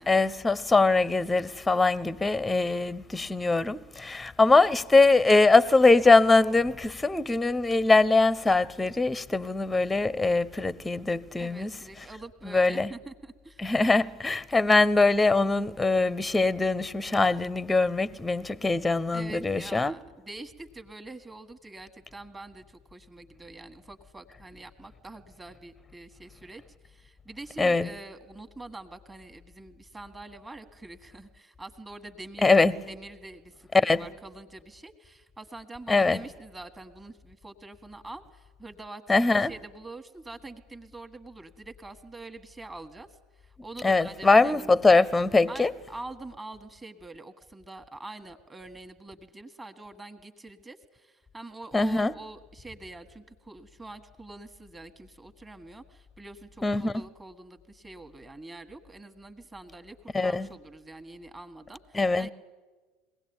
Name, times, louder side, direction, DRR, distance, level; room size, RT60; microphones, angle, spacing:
voice 1, 0.0-11.7 12.4-12.9 13.6-20.0 27.6-27.9 32.4-32.7 33.7-34.0 35.9-36.2 39.1-39.5 43.8-45.7 51.7-52.1 56.6-57.0 60.1-60.5 61.9-62.3, left 3 dB, 10° left, 0.7 m, -22 dB
voice 2, 11.4-13.7 19.1-32.5 32.9-44.7 45.5-62.3, right 2 dB, 15° right, 1.6 m, -45 dB
22.0 x 17.0 x 8.9 m
hypercardioid pair, 75°, 0 cm